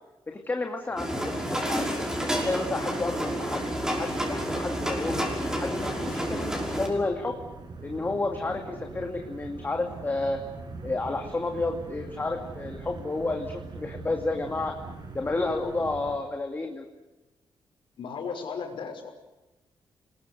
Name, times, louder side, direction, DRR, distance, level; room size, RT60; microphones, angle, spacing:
voice 1, 0.3-2.1 2.4-3.7 4.0-5.2 5.6-7.4 7.8-10.4 10.8-14.7 15.1-16.9, left 2 dB, 20° left, 3 dB, 2.5 m, -31 dB
sound 1, 1.0-6.9, equal, 5° right, 5.9 m, -30 dB
sound 2, 3.7-16.2, right 3 dB, 55° right, 6.0 m, -43 dB
voice 2, 18.0-19.1, left 5 dB, 75° left, 4 dB, 5.4 m, -36 dB
28.5 x 21.0 x 8.0 m, 1.1 s
wide cardioid pair, 140°, 9 cm